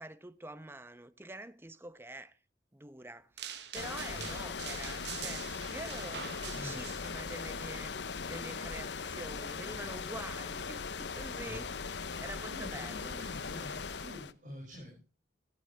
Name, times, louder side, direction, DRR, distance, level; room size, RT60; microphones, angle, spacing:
voice 1, 0.0-2.4 2.7-7.9 8.3-13.1, right 1 dB, 15° right, 0.8 m, -46 dB
sound 1, 3.4-7.4, right 9 dB, 70° right, 1.3 m, -44 dB
sound 2, 3.7-14.3, left 5 dB, 75° left, 0.9 m, -39 dB
voice 2, 12.5-15.0, equal, 45° right, 6.8 m, -47 dB
18.5 x 14.5 x 3.4 m
head